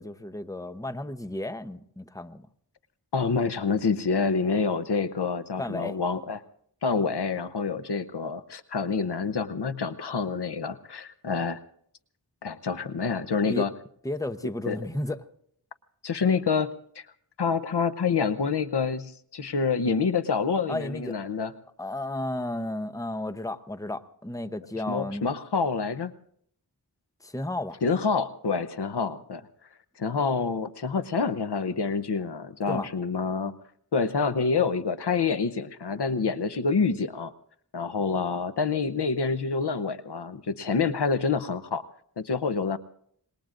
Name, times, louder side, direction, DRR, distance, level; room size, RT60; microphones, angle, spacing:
voice 1, 0.0-2.5 5.6-6.0 13.5-13.7 14.0-15.2 20.7-21.2 21.8-25.3 27.2-27.8 32.7-32.9, left 1 dB, 10° left, 11 dB, 0.8 m, -33 dB
voice 2, 3.1-6.4 6.8-11.6 12.4-13.7 14.7-14.8 16.0-17.0 17.4-21.5 24.9-26.1 27.8-29.4 30.0-33.5 33.9-37.3 37.7-41.8 42.2-42.8, left 5 dB, 80° left, 13 dB, 0.8 m, -27 dB
26.0 x 21.0 x 2.5 m, 0.65 s
wide cardioid pair, 40°, 40 cm